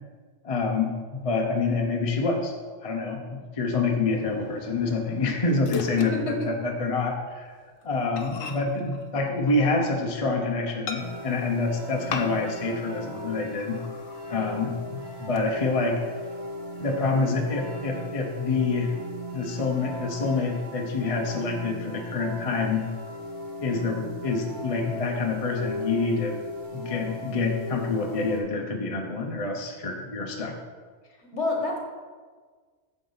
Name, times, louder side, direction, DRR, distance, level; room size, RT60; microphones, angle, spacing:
voice 1, 0.4-2.5 2.8-7.5 7.8-13.8 14.3-16.0 16.8-18.9 19.3-22.8 23.6-26.4 26.7-30.6, left 3 dB, 35° left, 2 dB, 0.7 m, -27 dB
Microwave oven, 4.1-7.0 7.3-7.5 7.8-7.9 8.2-10.2 10.9-11.5 12.1-12.7 13.0-13.1 13.5-14.3 14.7-15.4, left 6 dB, 80° left, 1.1 m, -40 dB
voice 2, 5.7-6.4 14.3-14.5 31.2-31.8, left 2 dB, 60° left, 0 dB, 1.7 m, -29 dB
sound 1, 11.0-28.4, equal, 60° right, 1.7 m, -38 dB
8.9 x 6.7 x 4.0 m, 1.5 s
omnidirectional pair, 1.3 m